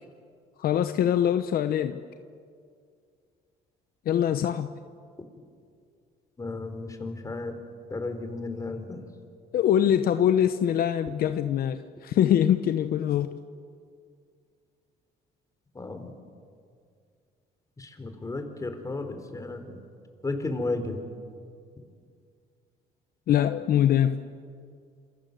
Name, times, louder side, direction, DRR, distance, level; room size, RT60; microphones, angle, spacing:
voice 1, 0.6-2.0 4.1-4.8 9.5-13.4 23.3-24.1, left 10 dB, 60° left, 10 dB, 1.0 m, -23 dB
voice 2, 6.4-7.6 7.9-9.0 15.8-16.1 17.8-19.8 20.2-21.0, left 2 dB, 20° left, 7 dB, 3.9 m, -33 dB
27.5 x 27.0 x 7.9 m, 2.2 s
cardioid pair, 110°, 17 cm